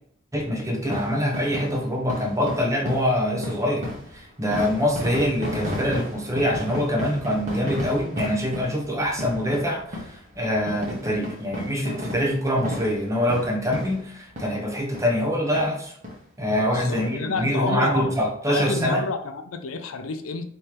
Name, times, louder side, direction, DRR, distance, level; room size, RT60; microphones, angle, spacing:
voice 1, 0.3-15.9 16.4-19.0, equal, 15° right, 0 dB, 0.8 m, -24 dB
sound 1, 0.8-14.7 14.9-15.1 15.5-15.6 16.0-16.2 16.5-17.5 17.9-18.0 18.2-18.3, left 1 dB, 35° right, 1.1 m, -34 dB
voice 2, 16.6-20.4, left 4 dB, 80° left, 8 dB, 0.5 m, -30 dB
4.4 x 3.2 x 3.3 m, 0.64 s
head